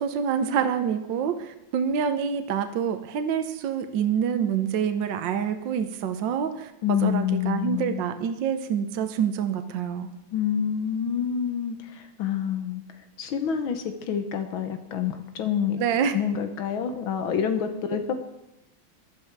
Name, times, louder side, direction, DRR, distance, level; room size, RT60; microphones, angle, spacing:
voice 1, 0.0-6.7 7.0-10.1 15.8-16.1, right 7 dB, 70° right, 8 dB, 1.5 m, -26 dB
voice 2, 6.8-8.0 10.3-12.8 13.2-15.8 16.1-18.1, left 8 dB, 90° left, 7 dB, 1.9 m, -27 dB
15.5 x 11.5 x 4.6 m, 0.95 s
omnidirectional pair, 2.1 m